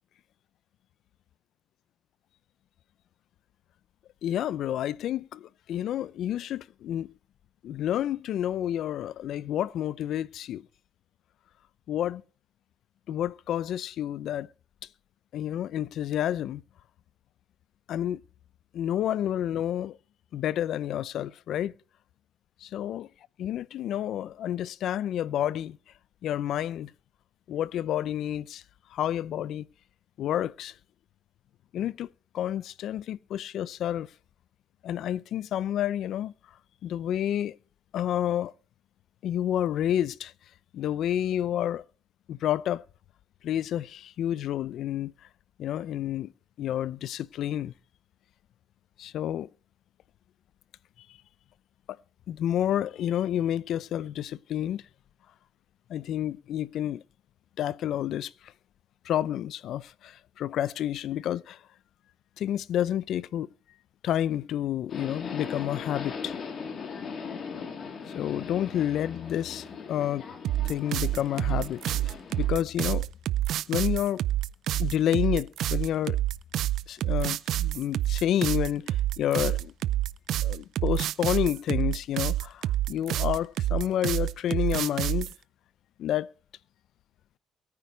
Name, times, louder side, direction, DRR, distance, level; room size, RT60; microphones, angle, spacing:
voice 1, 4.2-7.1 7.6-10.6 11.9-12.2 13.1-14.5 15.3-16.6 17.9-18.2 18.7-20.0 20.3-21.7 22.6-23.1 23.4-25.8 26.2-26.9 27.5-28.6 28.9-29.7 30.2-30.7 31.7-32.1 32.3-34.1 34.8-36.3 36.8-37.6 37.9-38.5 39.2-40.3 40.7-41.8 42.3-42.8 43.4-45.1 45.6-46.3 46.6-47.7 49.0-49.5 52.3-54.8 55.9-57.0 57.6-58.3 59.0-61.6 62.4-63.5 64.0-66.4 68.1-70.3 70.7-73.1 73.7-74.2 74.8-76.2 76.9-79.7 80.4-85.3 86.0-86.3, left 11 dB, 75° left, 0.6 m, -29 dB
Subway metro underground, 64.9-72.5, left 5 dB, 60° left, 3.4 m, -39 dB
sound 1, 70.4-85.3, right 13 dB, 80° right, 0.5 m, -27 dB
22.5 x 9.6 x 3.3 m
cardioid pair, 90°, 0 cm